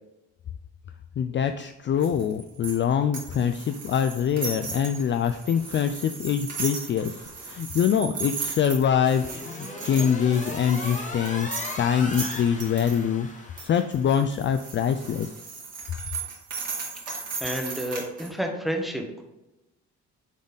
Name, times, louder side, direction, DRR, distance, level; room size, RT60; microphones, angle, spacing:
voice 1, 1.2-13.3 13.6-15.3, left 8 dB, 40° left, 8 dB, 0.4 m, -24 dB
sound 1, 2.0-13.0 13.6-18.3, right 4 dB, 55° right, 2.3 m, -36 dB
sound 2, 8.7-14.3, left 2 dB, 25° left, 1.2 m, -38 dB
voice 2, 17.1-19.2, equal, ahead, 2 dB, 1.3 m, -31 dB
7.2 x 4.0 x 3.9 m, 0.95 s
cardioid pair, 90°, 30 cm